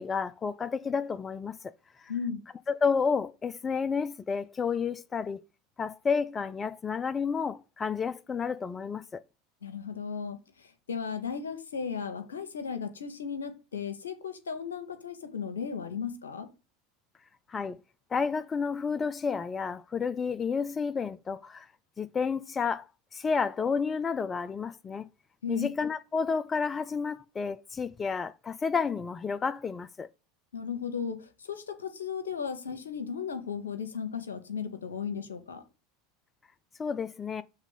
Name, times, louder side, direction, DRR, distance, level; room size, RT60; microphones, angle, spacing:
voice 1, 0.0-1.7 2.0-2.1 2.7-5.4 5.8-9.2 17.5-17.8 18.1-21.7 22.0-22.9 23.1-25.1 25.5-30.1 36.8-37.4, left 5 dB, 25° left, 0.4 m, -31 dB
voice 2, 2.1-2.4 9.6-16.5 25.4-25.7 30.5-35.6, left 6 dB, 80° left, 1.1 m, -35 dB
7.3 x 3.5 x 5.5 m
figure-of-eight pair, 80°, 0 cm